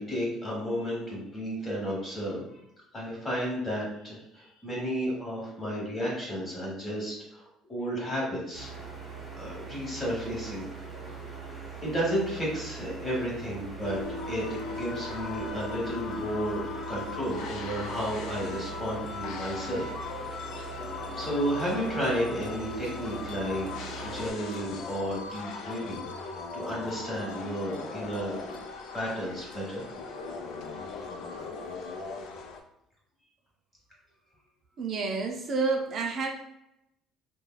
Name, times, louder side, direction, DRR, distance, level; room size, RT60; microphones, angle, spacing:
voice 1, 0.0-2.6 2.9-7.4 7.7-8.7 9.3-10.7 11.3-14.0 14.3-19.9 20.6-23.7 24.0-28.4 28.9-29.8 30.9-31.0, equal, 25° left, -4 dB, 1.3 m, -33 dB
sound 1, 8.5-24.3, right 5 dB, 5° right, 1.1 m, -42 dB
sound 2, 13.8-32.6, left 4 dB, 70° left, 0.4 m, -39 dB
voice 2, 34.8-36.3, right 4 dB, 45° right, 2 dB, 0.4 m, -29 dB
3.1 x 2.2 x 2.2 m, 0.81 s
cardioid pair, 115°, 0 cm